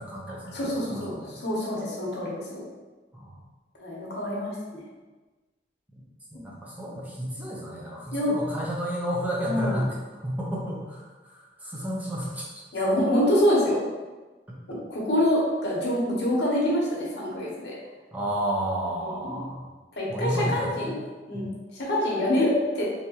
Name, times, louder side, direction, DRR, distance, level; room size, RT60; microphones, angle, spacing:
voice 1, 0.0-1.4 3.1-3.4 6.3-12.6 18.1-19.7 20.1-20.9 21.3-21.4, right 1 dB, 10° right, -5 dB, 0.6 m, -32 dB
voice 2, 0.5-2.6 3.8-4.8 8.1-8.3 9.4-9.8 12.7-13.8 14.7-17.7 19.1-19.4 20.0-21.0 21.3-22.8, left 1 dB, 75° left, -5 dB, 0.9 m, -26 dB
3.4 x 2.7 x 2.9 m, 1.3 s
head